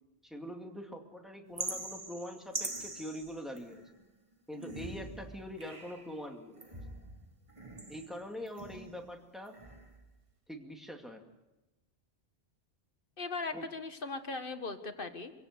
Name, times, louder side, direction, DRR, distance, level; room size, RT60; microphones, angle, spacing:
voice 1, 0.2-3.8 4.5-6.6 7.9-9.6 10.5-11.3 13.5-13.7, equal, ahead, 2 dB, 2.4 m, -43 dB
sound 1, 1.6-4.0 4.5-6.1 6.6-9.1 9.5-10.1, right 2 dB, 30° right, 1.7 m, -43 dB
voice 2, 13.2-15.3, left 3 dB, 50° left, 8 dB, 1.7 m, -38 dB
25.0 x 17.0 x 6.9 m, 1.0 s
omnidirectional pair, 1.1 m